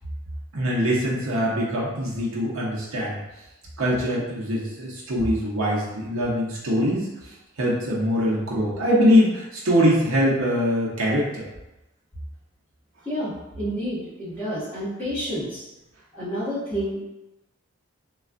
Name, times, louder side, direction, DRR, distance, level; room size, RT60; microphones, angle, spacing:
voice 1, 0.5-3.2 3.8-7.1 7.6-11.4, equal, 90° right, -5 dB, 0.7 m, -22 dB
voice 2, 13.0-15.6 16.1-17.0, equal, 10° left, -12 dB, 1.3 m, -29 dB
3.2 x 2.3 x 2.5 m, 0.98 s
head